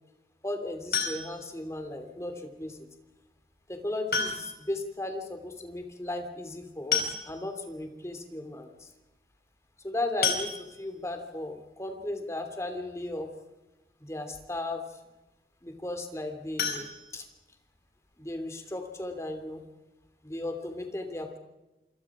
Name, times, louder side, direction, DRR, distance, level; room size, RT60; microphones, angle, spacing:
voice 1, 0.4-2.8 3.7-8.9 9.8-13.3 14.0-14.8 15.6-16.9 17.1-17.2 18.2-19.6 20.2-21.4, left 2 dB, 15° left, 5 dB, 2.9 m, -36 dB
sound 1, 0.9-1.6 3.0-3.1 4.1-4.7 5.0-5.1 5.4-5.5 6.5-6.6 6.9-7.6 8.2-8.3 8.6-8.8 10.2-11.1 16.5-17.7 18.1-18.2 18.6-18.7 19.1-19.2, left 6 dB, 60° left, 4.8 m, -31 dB
27.5 x 26.5 x 5.0 m, 1.0 s
head